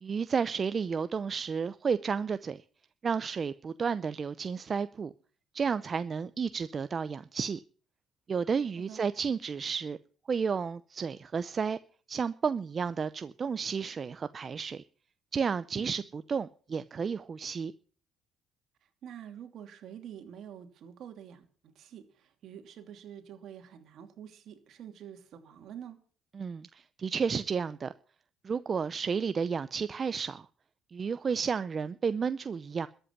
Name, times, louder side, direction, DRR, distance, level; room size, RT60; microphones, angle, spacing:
voice 1, 0.0-2.6 3.0-5.1 5.5-7.6 8.3-10.0 10.3-11.8 12.1-14.8 15.3-17.7 26.3-27.9 28.4-30.5 30.9-32.9, right 6 dB, 35° right, 0.6 m, -32 dB
voice 2, 19.0-26.0, right 9 dB, 60° right, 2.8 m, -47 dB
13.5 x 8.1 x 9.5 m
cardioid pair, 110°, 0 cm